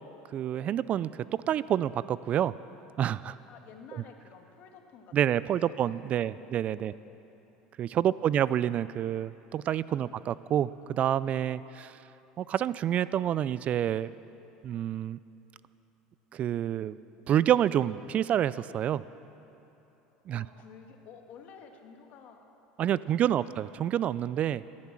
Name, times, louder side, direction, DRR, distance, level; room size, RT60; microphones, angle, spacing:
voice 1, 0.3-2.5 3.0-3.4 5.1-6.9 7.8-12.0 12.4-14.1 14.6-15.2 16.3-17.0 17.3-19.0 20.3-20.4 22.8-24.6, right 10 dB, 40° right, 18 dB, 0.3 m, -28 dB
voice 2, 3.5-5.4 5.9-6.5 6.8-7.2 8.1-8.7 10.0-10.3 17.1-17.3 20.3-22.5 22.9-23.5, left 6 dB, 55° left, 4 dB, 1.8 m, -52 dB
16.5 x 10.5 x 7.5 m, 3.0 s
supercardioid pair, 105°, 3 cm